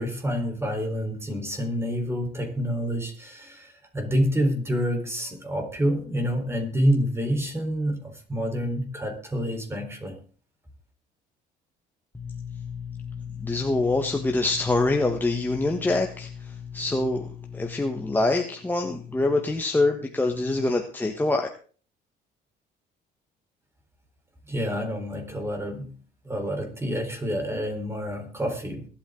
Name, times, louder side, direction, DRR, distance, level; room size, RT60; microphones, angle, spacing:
voice 1, 0.0-10.2 24.5-25.9 26.2-28.9, equal, 15° right, 3 dB, 4.3 m, -28 dB
voice 2, 12.1-21.5, left 2 dB, 10° left, 3 dB, 1.4 m, -25 dB
22.5 x 8.8 x 3.9 m, 0.41 s
cardioid pair, 110°, 17 cm